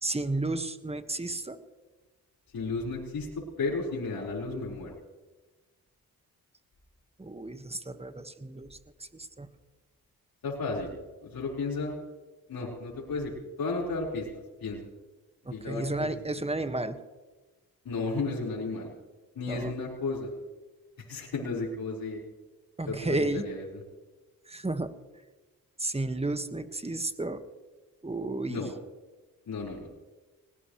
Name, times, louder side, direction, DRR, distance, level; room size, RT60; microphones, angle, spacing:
voice 1, 0.0-1.6 7.2-9.5 15.4-17.0 19.5-19.7 22.8-23.5 24.5-24.9 25.8-27.4 28.0-28.7, right 2 dB, 15° right, 9 dB, 1.6 m, -32 dB
voice 2, 2.5-4.9 10.4-12.0 12.5-13.3 13.6-14.3 14.6-14.8 15.5-16.4 17.8-18.9 19.3-20.3 21.1-22.2 22.9-23.6 28.5-28.7 29.5-29.9, left 3 dB, 70° left, -5 dB, 4.7 m, -33 dB
20.0 x 19.5 x 3.2 m, 1.2 s
supercardioid pair, 50°, 37 cm